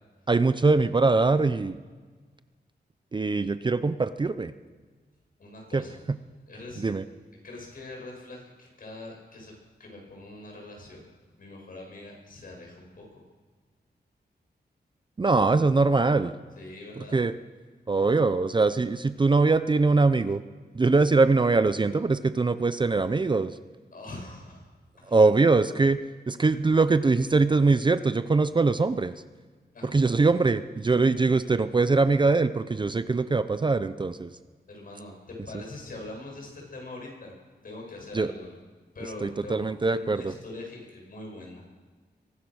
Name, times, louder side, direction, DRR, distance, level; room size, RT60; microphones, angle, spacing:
voice 1, 0.3-1.8 3.1-4.5 5.7-5.8 6.8-7.0 15.2-16.3 17.1-17.3 17.9-20.4 20.7-23.5 25.1-26.0 26.3-29.1 29.9-34.3 38.1-38.3 39.2-40.2, right 3 dB, 25° right, 12 dB, 0.6 m, -22 dB
voice 2, 5.4-6.0 6.5-6.8 7.4-9.5 9.8-11.0 11.4-13.2 16.6-17.2 23.9-24.6 25.0-25.2 29.7-30.0 34.7-37.4 37.6-38.6 38.9-41.7, left 2 dB, 55° left, 0 dB, 7.6 m, -43 dB
23.0 x 19.0 x 6.4 m, 1.5 s
wide cardioid pair, 165°, 18 cm